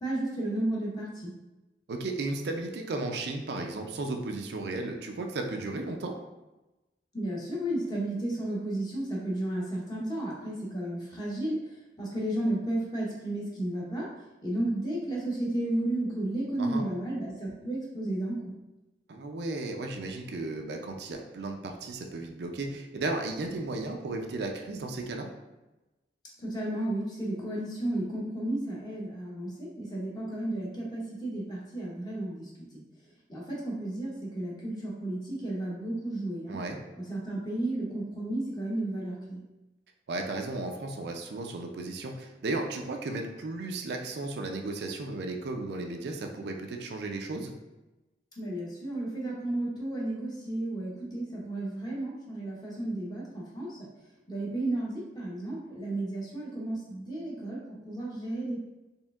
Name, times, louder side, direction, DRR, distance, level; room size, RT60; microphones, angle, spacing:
voice 1, 0.0-1.3 7.1-14.1 14.4-18.5 26.4-32.8 33.3-36.6 37.0-39.4 48.4-53.8 54.3-58.6, right 1 dB, 20° left, -4 dB, 0.8 m, -33 dB
voice 2, 1.9-6.1 16.6-16.8 19.1-25.3 36.5-36.8 40.1-47.5, right 2 dB, 65° right, 3 dB, 0.4 m, -34 dB
4.3 x 3.3 x 2.4 m, 1.0 s
head